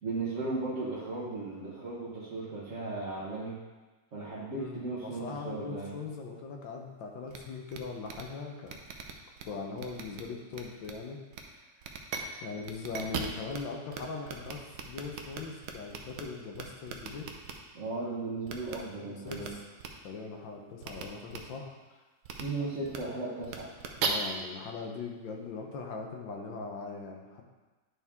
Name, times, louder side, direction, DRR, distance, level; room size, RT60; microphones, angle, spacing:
voice 1, 0.0-3.6 4.1-6.0 17.7-19.6 22.4-23.7, right 3 dB, 45° right, -8 dB, 1.3 m, -36 dB
voice 2, 4.5-8.8 9.4-11.2 12.4-17.3 19.0-19.6 20.0-22.0 24.0-27.4, left 4 dB, 85° left, 2 dB, 1.6 m, -40 dB
sound 1, 7.3-7.4 7.7-7.8 8.1-8.2 8.7-9.4 9.8-10.2 10.5-10.9 11.3-11.4 11.8-12.2 12.6-13.6 13.9-14.0 14.3-16.2 16.5-17.5 18.5-18.8 19.3-19.5 19.8-19.9 20.8-21.0 21.3-21.4 22.2-22.4 22.8-23.0 23.4-24.1, right 8 dB, 70° right, 1.2 m, -37 dB
9.3 x 4.4 x 3.6 m, 1.2 s
omnidirectional pair, 2.0 m